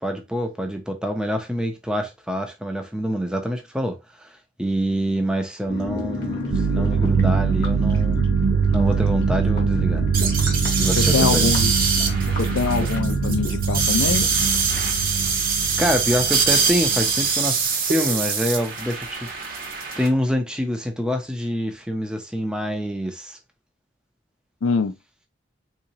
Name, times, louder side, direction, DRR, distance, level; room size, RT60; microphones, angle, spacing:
voice 1, 0.0-8.4 8.7-10.0 10.8-11.5 15.8-19.3 20.0-23.4, equal, 5° right, 0.5 m, -26 dB
sound 1, 5.7-18.0 18.3-18.4 18.7-19.0, equal, 55° left, 1.3 m, -29 dB
sound 2, 6.5-17.3 17.9-18.2, right 6 dB, 90° right, 0.3 m, -24 dB
sound 3, 10.1-20.1, right 5 dB, 45° right, 0.8 m, -23 dB
voice 2, 11.0-11.7 12.4-14.3 24.6-25.0, left 5 dB, 85° left, 0.4 m, -23 dB
3.8 x 2.9 x 2.7 m
head